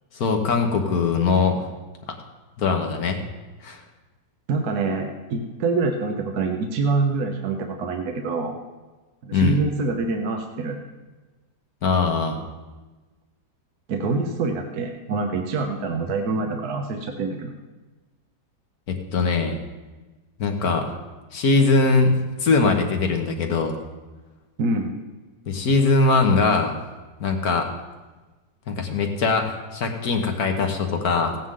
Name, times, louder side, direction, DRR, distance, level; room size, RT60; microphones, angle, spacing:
voice 1, 0.1-1.7 2.6-3.2 3.6-3.8 9.3-9.6 11.8-12.4 18.9-19.6 20.4-21.0 21.3-23.8 25.5-26.8 27.2-27.7 28.7-31.4, left 4 dB, 60° left, 4 dB, 1.6 m, -21 dB
voice 2, 4.5-8.6 9.2-10.8 13.9-17.5 24.6-25.0, right 3 dB, 65° right, 3 dB, 1.5 m, -25 dB
16.0 x 9.6 x 3.8 m, 1.2 s
omnidirectional pair, 1.9 m